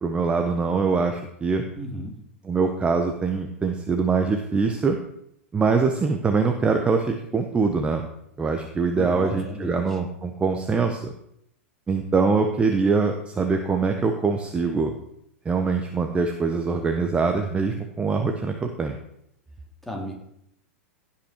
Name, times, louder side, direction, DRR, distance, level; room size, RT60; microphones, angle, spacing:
voice 1, 0.0-1.6 2.5-5.0 5.5-8.0 8.4-11.1 11.9-14.9 15.4-19.0, right 4 dB, 15° right, 5 dB, 1.2 m, -23 dB
voice 2, 1.8-2.2 9.0-10.0 19.8-20.1, equal, 5° left, -1 dB, 3.7 m, -34 dB
16.5 x 6.0 x 6.2 m, 0.75 s
figure-of-eight pair, 95°, 7 cm